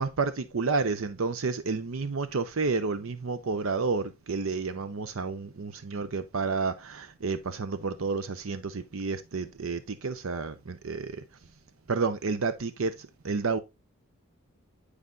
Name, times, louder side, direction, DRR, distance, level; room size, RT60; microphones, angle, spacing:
voice 1, 0.0-11.2 11.9-12.9 13.2-13.6, right 4 dB, 70° right, 0.7 m, -30 dB
9.5 x 4.9 x 2.5 m
head